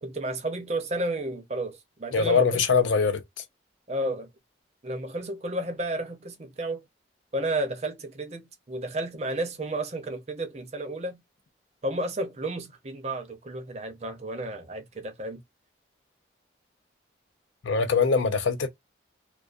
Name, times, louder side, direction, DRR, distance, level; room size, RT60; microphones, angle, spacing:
voice 1, 0.0-2.8 3.9-4.3 4.8-6.8 7.3-11.2 11.8-15.4, right 1 dB, 35° right, 0.5 m, -32 dB
voice 2, 2.1-3.2 17.6-18.7, left 5 dB, 85° left, 0.6 m, -22 dB
2.3 x 2.3 x 2.5 m
head